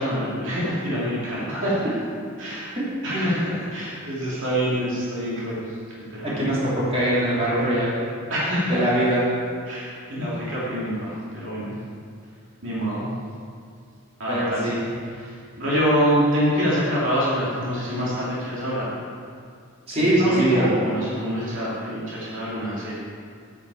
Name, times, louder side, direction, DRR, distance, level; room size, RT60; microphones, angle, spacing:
voice 1, 0.0-1.8 2.4-2.7 3.0-5.6 6.0-6.5 8.3-8.8 9.7-11.7 12.6-13.1 14.2-14.8 15.1-18.9 20.0-23.0, equal, 60° right, -8 dB, 2.8 m, -26 dB
voice 2, 2.8-3.2 6.2-7.9 8.7-9.3 14.3-14.9 19.9-20.7, right 1 dB, 30° right, -8 dB, 3.1 m, -22 dB
10.5 x 9.2 x 4.9 m, 2.3 s
head